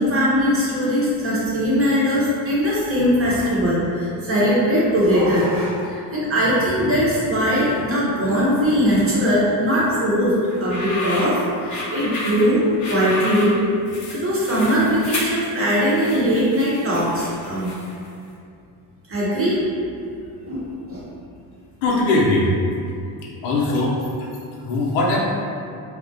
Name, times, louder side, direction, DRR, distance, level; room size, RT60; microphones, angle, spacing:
voice 1, 0.0-10.4 10.6-12.6 12.9-13.6 14.1-17.7 19.1-19.6 20.4-21.0, equal, 30° right, -7 dB, 0.7 m, -20 dB
sound 1, 10.5-18.1, left 1 dB, 40° left, 0.5 m, -31 dB
voice 2, 21.8-22.5 23.4-24.3 24.6-25.2, left 2 dB, 85° left, -3 dB, 0.6 m, -20 dB
2.3 x 2.1 x 2.6 m, 2.5 s
cardioid pair, 100°, 45 cm